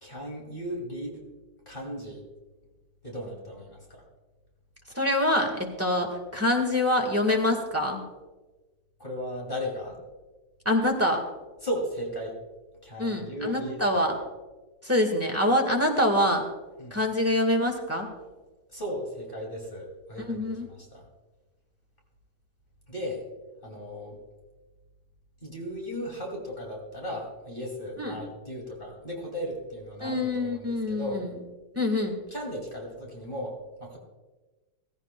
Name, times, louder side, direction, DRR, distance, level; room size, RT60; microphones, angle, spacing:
voice 1, 0.0-1.2 1.7-2.2 3.0-4.0 9.0-10.0 11.6-12.4 12.8-14.0 16.8-17.0 18.7-21.1 22.9-23.2 23.6-24.2 25.4-31.2 32.3-34.0, equal, 30° left, -1 dB, 2.6 m, -36 dB
voice 2, 4.9-8.0 10.6-11.2 13.0-14.1 14.8-16.4 16.9-18.1 20.3-20.7 28.0-28.2 30.0-31.4 31.7-32.1, left 1 dB, 10° right, 2 dB, 1.4 m, -25 dB
16.5 x 16.0 x 2.2 m, 1.2 s
omnidirectional pair, 1.7 m